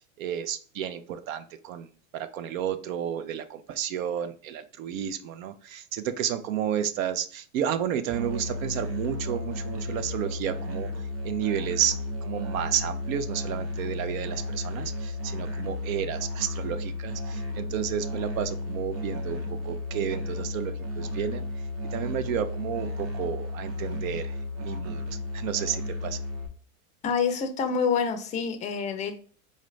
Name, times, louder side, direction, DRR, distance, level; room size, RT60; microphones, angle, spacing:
voice 1, 0.2-1.9 2.1-10.9 11.2-21.5 21.9-25.0 25.3-26.2, right 9 dB, 75° right, 11 dB, 0.6 m, -31 dB
Musical instrument, 8.1-26.5, left 1 dB, 35° right, 0.9 m, -33 dB
voice 2, 27.0-29.2, left 6 dB, 20° left, 7 dB, 0.4 m, -27 dB
4.2 x 2.5 x 3.1 m, 0.42 s
supercardioid pair, 135°, 41 cm